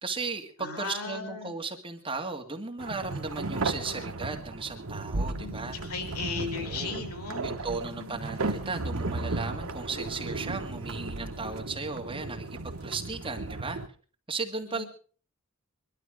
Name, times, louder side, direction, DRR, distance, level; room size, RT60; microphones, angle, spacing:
voice 1, 0.0-5.8 6.5-7.0 7.4-13.8 14.3-14.8, right 4 dB, 25° right, 3 dB, 1.9 m, -36 dB
voice 2, 0.6-1.6 5.3-8.2 14.6-14.9, left 4 dB, 85° left, 6 dB, 3.9 m, -37 dB
sound 1, 2.8-13.9, right 2 dB, 70° right, 1.3 m, -35 dB
22.0 x 12.5 x 5.0 m, 0.43 s
head